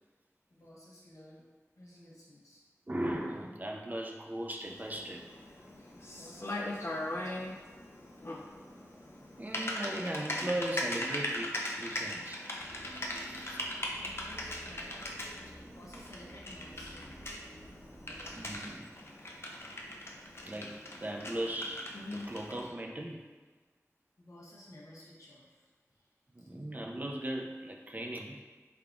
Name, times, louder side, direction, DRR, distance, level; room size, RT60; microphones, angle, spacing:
voice 1, 0.5-1.5 1.8-2.6 5.7-7.5 8.0-8.1 14.0-15.1 15.4-17.2 18.0-18.8 24.2-26.5, left 1 dB, 75° left, -5 dB, 0.8 m, -55 dB
voice 2, 2.9-5.3 9.4-12.5 13.2-13.6 18.3-18.9 20.4-23.2 26.3-28.4, right 1 dB, 30° right, 0 dB, 0.4 m, -38 dB
Typing, 4.6-22.7, left 1 dB, 50° left, 0.5 m, -40 dB
sound 1, 12.6-18.7, equal, 55° right, 1.3 m, -52 dB
3.6 x 3.5 x 2.3 m, 1.4 s
wide cardioid pair, 40°, 5 cm